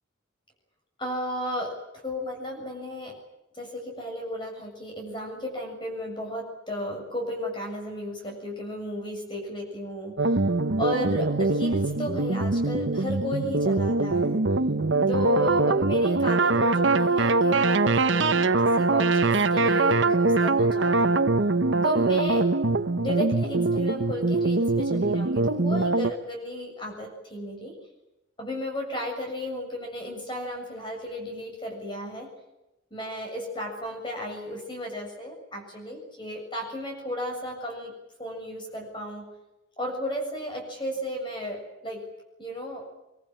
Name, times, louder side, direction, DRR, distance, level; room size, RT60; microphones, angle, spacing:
voice 1, 1.0-1.8 2.0-3.2 3.5-10.4 10.8-14.4 15.1-21.3 21.8-22.5 23.0-27.8 28.4-32.3 32.9-37.9 38.2-39.3 39.8-42.1 42.4-42.8, equal, 25° left, 1 dB, 7.1 m, -34 dB
sound 1, 10.2-26.1, right 3 dB, 70° right, 1.1 m, -23 dB
24.5 x 23.0 x 9.0 m, 0.95 s
head